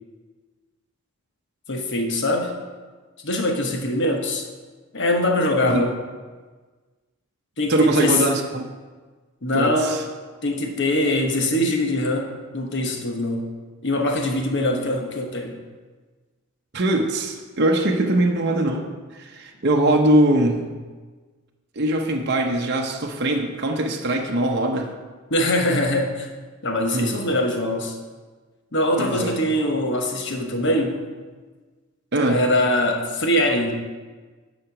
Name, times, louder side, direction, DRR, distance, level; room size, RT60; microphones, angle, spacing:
voice 1, 1.7-2.5 3.2-4.4 4.9-6.0 7.6-8.2 9.4-9.9 10.4-13.5 13.8-15.6 25.3-26.3 26.6-28.0 28.7-31.0 32.3-33.7, left 1 dB, 55° left, 3 dB, 1.1 m, -22 dB
voice 2, 7.7-8.7 9.5-10.0 16.7-18.9 19.1-20.6 21.8-24.9 26.9-27.2 29.0-29.4 32.1-32.4, right 1 dB, 50° right, 2 dB, 0.7 m, -21 dB
9.7 x 4.3 x 5.9 m, 1.4 s
head